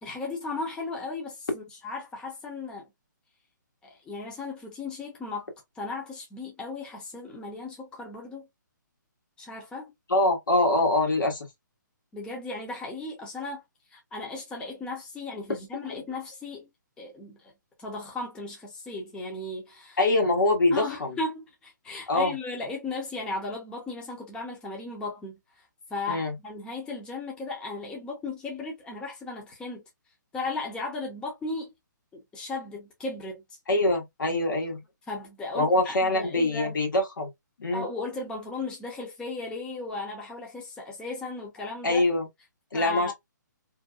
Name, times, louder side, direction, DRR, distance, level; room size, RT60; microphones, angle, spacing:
voice 1, 0.0-2.9 3.8-5.4 5.7-8.5 9.4-9.9 12.1-13.6 13.9-16.7 17.0-17.5 17.8-20.0 20.7-25.4 25.9-29.8 30.3-31.7 32.3-33.4 35.1-36.7 37.7-42.0 42.7-43.1, left 3 dB, 10° left, 0.6 m, -36 dB
voice 2, 10.1-11.5 15.9-16.0 20.0-20.9 22.1-22.3 26.1-26.3 33.7-34.8 35.5-37.3 37.6-37.9 41.8-42.3 42.7-43.1, left 2 dB, 80° left, 1.3 m, -24 dB
2.6 x 2.2 x 2.3 m
hypercardioid pair, 150°, 11 cm